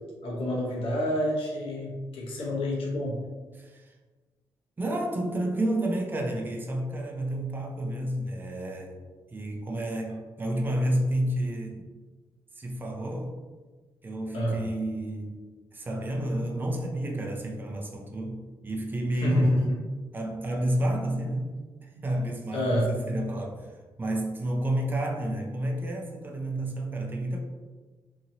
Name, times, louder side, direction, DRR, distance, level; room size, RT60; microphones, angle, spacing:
voice 1, 0.2-3.2 14.3-14.6 19.2-19.6 22.5-22.9, equal, 80° left, -3 dB, 0.9 m, -28 dB
voice 2, 3.6-3.9 4.8-9.0 9.3-11.9 12.6-13.3 14.0-15.4 15.7-19.7 20.1-21.5 21.8-27.4, right 1 dB, 20° right, 0 dB, 0.5 m, -30 dB
2.9 x 2.7 x 2.7 m, 1.3 s
cardioid pair, 100°, 9 cm